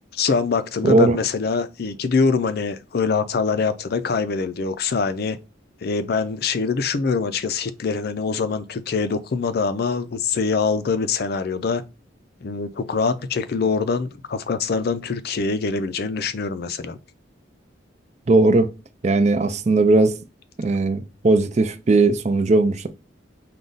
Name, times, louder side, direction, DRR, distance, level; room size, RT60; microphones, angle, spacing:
voice 1, 0.1-5.4 5.8-11.8 12.4-17.0, left 4 dB, 55° left, 0.4 m, -24 dB
voice 2, 0.8-1.2 18.3-18.7 19.0-20.1 20.6-22.9, right 2 dB, 35° right, 0.4 m, -18 dB
5.0 x 2.3 x 3.9 m
head